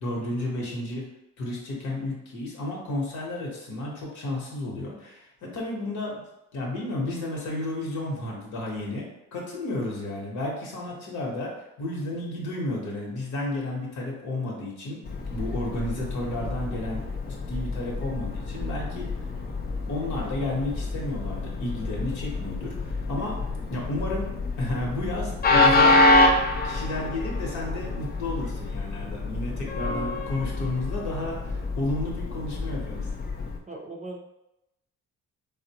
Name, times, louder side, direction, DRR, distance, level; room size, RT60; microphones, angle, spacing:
voice 1, 0.0-1.0 1.4-6.2 6.5-11.5 11.8-15.0 15.3-17.0 17.5-19.1 19.9-23.4 23.7-26.2 26.6-33.1, left 1 dB, 75° left, -2 dB, 1.1 m, -32 dB
Train, 15.0-33.6, left 2 dB, 30° left, 0.5 m, -27 dB
voice 2, 33.7-34.2, right 2 dB, 25° right, 1 dB, 0.5 m, -38 dB
3.8 x 2.1 x 2.8 m, 0.88 s
cardioid pair, 90°, 30 cm